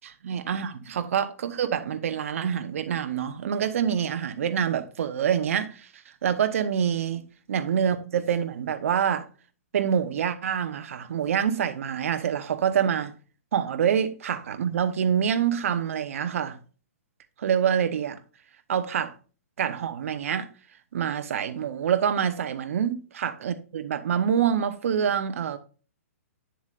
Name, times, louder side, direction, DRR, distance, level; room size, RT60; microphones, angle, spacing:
voice 1, 0.0-5.9 6.2-7.2 7.5-9.2 9.7-13.1 13.5-16.6 17.4-18.2 18.7-19.1 19.6-20.5 20.9-25.6, right 8 dB, 65° right, 1.0 m, -26 dB
9.2 x 7.1 x 2.5 m
hypercardioid pair, 150°, 8 cm